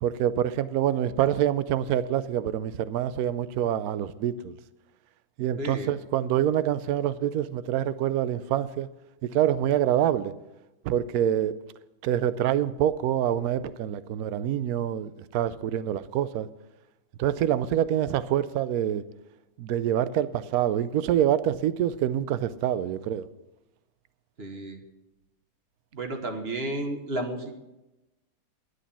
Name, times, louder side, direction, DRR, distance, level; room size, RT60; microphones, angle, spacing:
voice 1, 0.0-4.5 5.4-8.9 9.3-10.3 10.8-11.6 12.0-16.5 17.2-19.0 19.6-23.3, right 11 dB, 70° right, 15 dB, 0.9 m, -26 dB
voice 2, 5.6-5.9 24.4-24.8 25.9-27.6, right 1 dB, 35° right, 5 dB, 1.4 m, -32 dB
11.5 x 8.1 x 7.1 m, 0.98 s
omnidirectional pair, 2.1 m